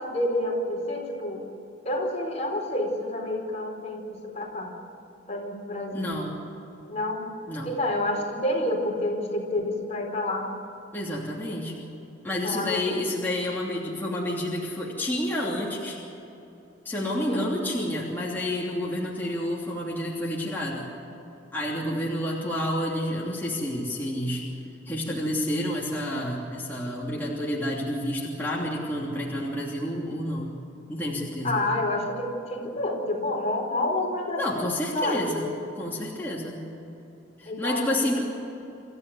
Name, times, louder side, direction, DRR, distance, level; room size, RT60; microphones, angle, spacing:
voice 1, 0.0-1.4 1.8-4.7 5.3-6.1 6.9-7.3 7.6-10.5 12.4-13.0 17.3-17.5 31.4-35.5 37.4-38.1, left 1 dB, 35° left, 0 dB, 4.4 m, -29 dB
voice 2, 5.9-6.4 7.5-7.7 10.9-11.9 12.2-16.0 16.8-20.9 21.5-24.5 24.9-30.6 30.9-31.6 34.4-35.5 35.8-36.6 37.4-38.2, left 1 dB, 10° left, -5 dB, 3.0 m, -29 dB
27.5 x 14.5 x 9.4 m, 2.9 s
head